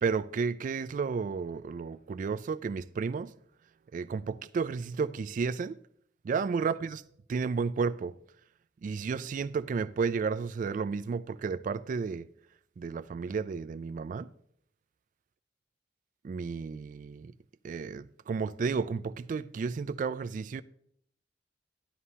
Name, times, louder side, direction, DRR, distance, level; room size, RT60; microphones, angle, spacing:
voice 1, 0.0-3.3 3.9-5.8 6.2-7.0 7.3-8.2 8.8-12.3 12.8-14.3 16.2-17.3 17.6-20.6, right 5 dB, 45° right, 0.3 m, -32 dB
13.0 x 11.0 x 2.8 m
head